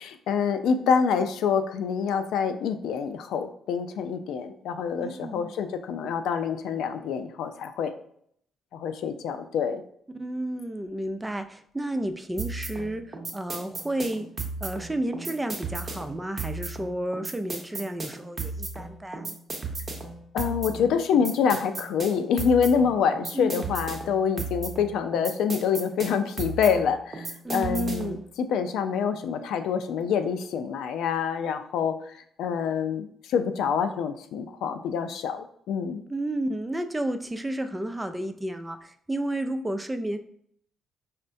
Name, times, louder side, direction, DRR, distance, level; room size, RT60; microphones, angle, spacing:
voice 1, 0.0-7.9 8.7-9.8 20.3-32.0 32.4-36.0, left 6 dB, 80° left, 9 dB, 0.3 m, -26 dB
voice 2, 5.0-5.5 10.1-14.3 14.6-19.4 23.3-23.7 27.4-28.3 36.1-40.2, right 1 dB, 10° right, 7 dB, 0.3 m, -31 dB
sound 1, 12.4-28.2, right 3 dB, 30° right, 0.8 m, -35 dB
5.3 x 2.1 x 2.6 m, 0.67 s
cardioid pair, 90°, 0 cm